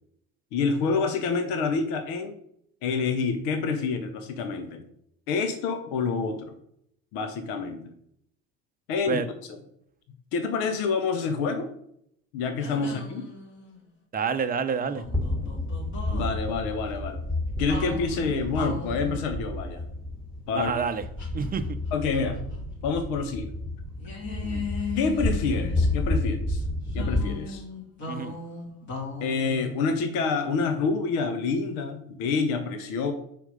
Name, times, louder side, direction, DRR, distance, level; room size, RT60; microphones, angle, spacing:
voice 1, 0.5-2.4 2.8-4.8 5.3-6.5 7.1-7.9 8.9-9.2 9.5-9.6 10.3-11.7 12.3-13.3 16.1-17.2 17.6-19.8 20.5-20.7 21.9-22.4 22.8-23.5 25.0-26.6 26.9-27.6 29.2-33.1, left 4 dB, 65° left, 8 dB, 1.1 m, -27 dB
sound 1, 12.6-13.9 14.8-16.3 17.7-19.3 21.2-22.6 22.9-23.0 24.0-26.1 26.9-30.7, left 4 dB, 40° left, 2.9 m, -38 dB
voice 2, 14.1-15.0 20.5-21.0 21.3-21.7 24.4-24.7 28.1-28.4, right 6 dB, 20° right, 9 dB, 0.7 m, -28 dB
sound 2, 15.0-27.2, left 2 dB, ahead, 1.6 m, -31 dB
5.2 x 4.7 x 5.3 m, 0.70 s
hypercardioid pair, 70°, 43 cm